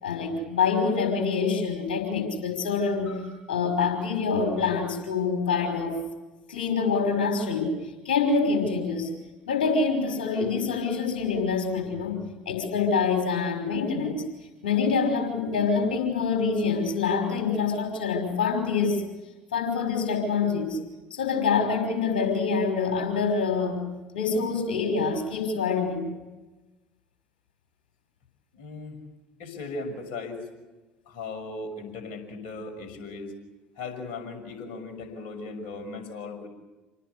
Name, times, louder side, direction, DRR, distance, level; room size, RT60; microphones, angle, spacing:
voice 1, 0.0-6.0 6.5-7.8 8.0-9.1 9.5-12.1 12.5-14.3 14.6-19.0 19.5-20.8 21.1-23.8 24.1-26.2, left 5 dB, 70° left, 5 dB, 5.6 m, -26 dB
voice 2, 28.5-29.0 29.4-30.5 31.1-33.3 33.8-36.5, left 3 dB, 55° left, 4 dB, 6.4 m, -37 dB
28.0 x 19.5 x 8.3 m, 1.1 s
figure-of-eight pair, 60°, 5 cm